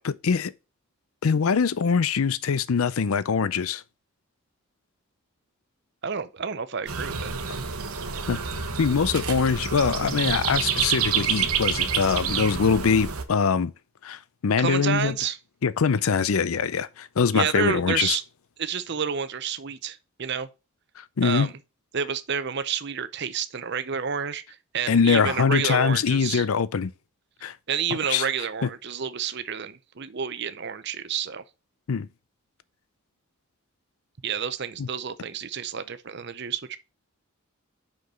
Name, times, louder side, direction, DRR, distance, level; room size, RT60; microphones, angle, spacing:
voice 1, 0.0-0.5 1.2-3.8 8.3-8.4 8.8-13.7 14.0-15.2 15.6-18.2 21.2-21.5 24.9-26.9 27.4-27.5 28.1-28.3 28.6-28.7 31.9-32.1 34.8-34.9, left 6 dB, 80° left, 0.5 m, -23 dB
voice 2, 6.0-7.4 14.6-15.4 17.3-18.2 18.6-20.5 21.2-21.6 21.9-24.4 24.7-26.4 27.7-31.4 34.2-36.8, right 7 dB, 50° right, 0.7 m, -29 dB
sound 1, 6.9-13.2, right 7 dB, 85° right, 1.1 m, -28 dB
5.9 x 5.3 x 6.7 m
head